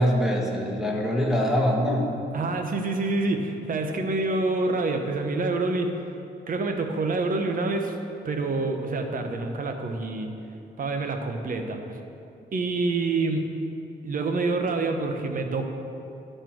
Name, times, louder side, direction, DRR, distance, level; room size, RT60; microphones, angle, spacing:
voice 1, 0.0-2.1, equal, ahead, -2 dB, 1.4 m, -23 dB
voice 2, 2.3-5.9 6.5-7.9 8.2-10.3 10.8-12.0 12.5-13.5 14.0-15.7, right 3 dB, 50° right, 5 dB, 0.9 m, -27 dB
12.0 x 4.5 x 4.6 m, 2.7 s
cardioid pair, 90°, 18 cm